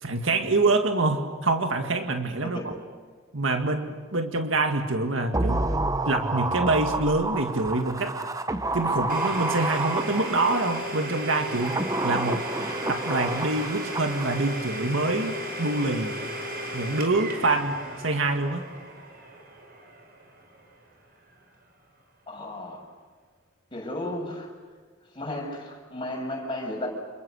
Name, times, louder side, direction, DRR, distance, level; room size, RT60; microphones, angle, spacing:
voice 1, 0.0-2.6 3.3-5.7 6.1-8.2 8.7-12.4 12.9-16.2 16.7-18.6, right 2 dB, 70° right, 5 dB, 2.1 m, -26 dB
sound 1, 5.3-10.8 11.4-14.7 14.9-15.0, right 2 dB, 15° right, 0.8 m, -29 dB
Domestic sounds home sounds, 9.1-20.7, right 1 dB, 50° right, 5.5 m, -35 dB
voice 2, 22.3-22.8 23.7-24.5 25.1-26.9, left 1 dB, 25° left, -1 dB, 7.1 m, -34 dB
29.0 x 28.5 x 6.6 m, 1.5 s
head